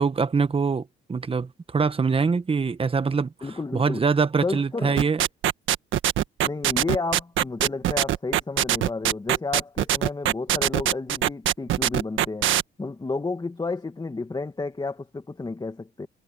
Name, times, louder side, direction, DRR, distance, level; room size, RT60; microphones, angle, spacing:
voice 1, 0.0-5.2, right 5 dB, 30° right, 1.3 m, -24 dB
voice 2, 3.4-4.0 4.4-5.0 6.4-12.5 12.8-16.1, left 3 dB, 20° left, 1.7 m, -31 dB
sound 1, 5.0-12.6, right 12 dB, 80° right, 1.5 m, -22 dB
cardioid pair, 90°, 20 cm